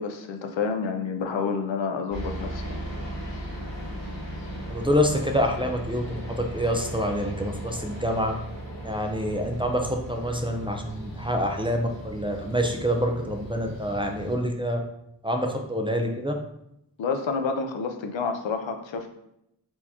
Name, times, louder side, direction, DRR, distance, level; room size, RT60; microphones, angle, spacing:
voice 1, 0.0-2.8 17.0-19.1, left 5 dB, 90° left, 5 dB, 0.6 m, -29 dB
sound 1, 2.1-14.3, right 1 dB, 70° left, 1.3 m, -37 dB
voice 2, 4.7-8.3 8.8-14.8 15.2-16.3, equal, 10° right, 2 dB, 0.4 m, -26 dB
4.4 x 2.8 x 3.5 m, 0.80 s
wide cardioid pair, 95°, 44 cm